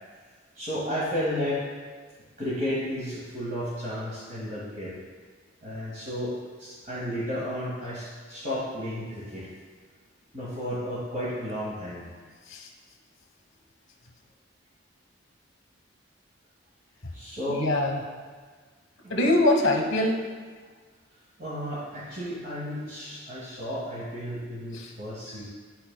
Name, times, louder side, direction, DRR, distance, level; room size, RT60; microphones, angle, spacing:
voice 1, 0.5-1.6 2.4-4.9 5.6-9.5 10.3-12.1 17.1-17.6 19.0-19.1 21.4-25.5, equal, 40° right, -10 dB, 1.6 m, -33 dB
voice 2, 17.5-18.0 19.1-20.2 24.7-24.9, left 1 dB, 70° left, 2 dB, 1.1 m, -23 dB
11.5 x 4.1 x 2.2 m, 1.5 s
head